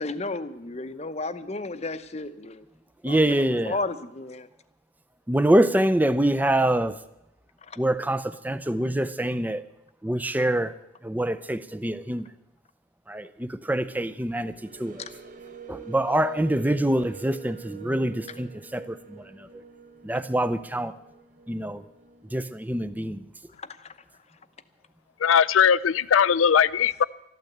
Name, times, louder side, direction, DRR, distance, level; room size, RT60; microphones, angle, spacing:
voice 1, 0.0-2.6 3.1-4.5 7.6-7.8 15.0-15.1 23.6-23.9, left 3 dB, 35° left, 0.7 m, -33 dB
voice 2, 3.0-3.8 5.3-7.0 7.8-9.6 10.0-10.7 11.0-12.3 13.1-14.5 14.8-15.0 15.7-19.6 20.0-20.9 21.5-21.8 22.3-23.2, right 1 dB, 10° right, 0.5 m, -25 dB
sound 1, 14.1-22.5, right 7 dB, 40° right, 0.9 m, -46 dB
voice 3, 25.2-27.0, left 7 dB, 85° left, 0.4 m, -19 dB
13.5 x 12.0 x 8.0 m
head